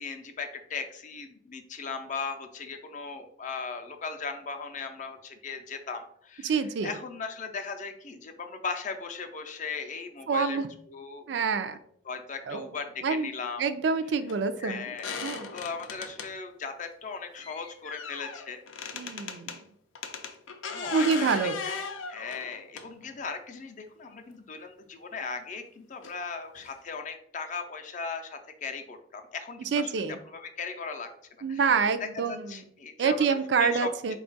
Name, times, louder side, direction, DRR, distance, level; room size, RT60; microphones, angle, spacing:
voice 1, 0.0-10.6 10.9-11.3 12.0-13.6 14.6-19.2 20.7-21.8 22.1-29.9 30.3-31.1 31.5-31.7 32.0-33.9, left 5 dB, 40° left, 6 dB, 0.5 m, -38 dB
voice 2, 6.4-6.9 10.3-10.7 11.3-11.8 12.5-12.7 13.0-13.3 13.6-14.9 15.2-15.5 18.9-19.6 20.9-21.5 29.7-30.2 31.4-32.5 33.0-34.2, right 5 dB, 60° right, 10 dB, 0.3 m, -27 dB
sound 1, 14.3-14.4 15.0-16.3 17.4-19.6 19.9-23.2 24.3-24.4 26.0-26.1 26.6-26.7 26.9-27.0, left 5 dB, 90° left, 0.5 m, -38 dB
4.2 x 2.3 x 3.9 m, 0.67 s
head